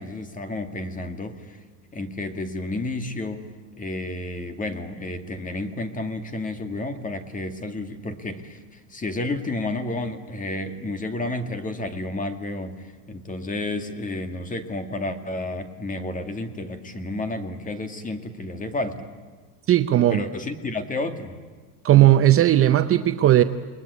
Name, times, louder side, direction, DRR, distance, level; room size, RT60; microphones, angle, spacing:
voice 1, 0.0-1.6 1.9-3.5 3.8-19.1 20.1-21.3, left 2 dB, 20° left, 2.1 m, -31 dB
voice 2, 19.7-20.2 21.8-23.4, right 13 dB, 30° right, 0.7 m, -16 dB
29.5 x 21.0 x 9.6 m
cardioid pair, 150°, 43 cm